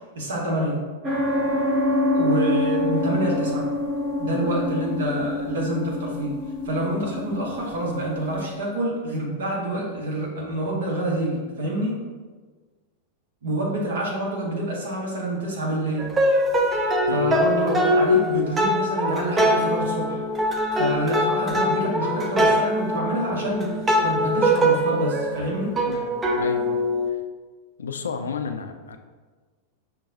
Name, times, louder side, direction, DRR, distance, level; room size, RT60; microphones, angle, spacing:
voice 1, 0.1-0.8 2.1-3.7 4.2-6.3 6.6-12.0 13.4-16.1 17.1-20.2 20.7-25.8, right 1 dB, 65° right, -3 dB, 0.9 m, -27 dB
sound 1, 1.0-8.5, left 2 dB, 30° right, 0.9 m, -26 dB
sound 2, 16.0-27.1, equal, 15° right, 0.4 m, -22 dB
voice 2, 25.8-27.2 27.8-29.0, left 5 dB, 70° left, 6 dB, 0.3 m, -33 dB
5.7 x 2.2 x 2.6 m, 1.4 s
figure-of-eight pair, 90°, 0 cm